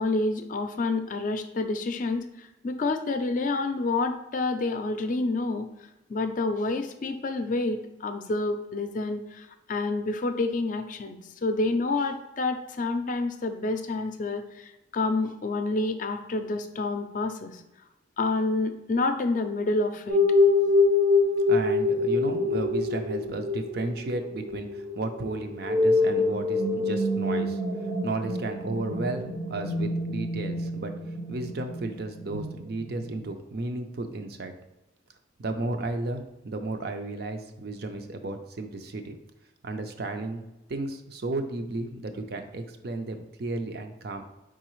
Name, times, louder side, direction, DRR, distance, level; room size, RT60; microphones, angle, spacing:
voice 1, 0.0-5.7 6.1-17.5 18.2-20.2, left 3 dB, 45° left, 7 dB, 0.4 m, -28 dB
sound 1, 20.1-33.2, left 3 dB, 85° right, 0.9 m, -26 dB
voice 2, 21.5-27.6 28.0-30.9 31.3-34.5 35.4-39.1 39.6-40.4 40.7-44.2, right 2 dB, 60° right, 6 dB, 0.5 m, -33 dB
4.8 x 3.6 x 3.0 m, 0.95 s
head